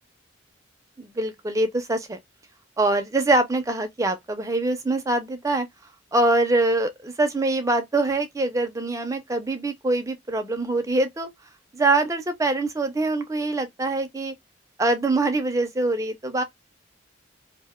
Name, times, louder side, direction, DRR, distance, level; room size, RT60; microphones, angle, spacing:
voice 1, 1.0-2.2 2.8-5.7 6.1-11.3 11.7-14.3 14.8-16.4, right 2 dB, 15° right, 0.4 m, -24 dB
2.6 x 2.1 x 3.5 m
head